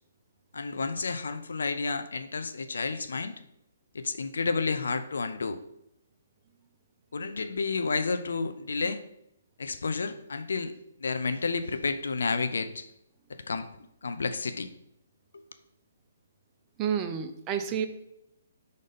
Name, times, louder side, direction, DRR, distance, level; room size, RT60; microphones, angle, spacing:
voice 1, 0.5-3.4 3.9-5.6 7.1-9.0 9.6-10.7 11.0-12.9 13.3-13.7 14.0-14.7 15.3-15.4, left 4 dB, 75° left, 11 dB, 0.6 m, -31 dB
voice 2, 16.8-17.9, right 8 dB, 25° right, 6 dB, 0.6 m, -29 dB
5.2 x 4.0 x 5.1 m, 0.79 s
hypercardioid pair, 145°, 0 cm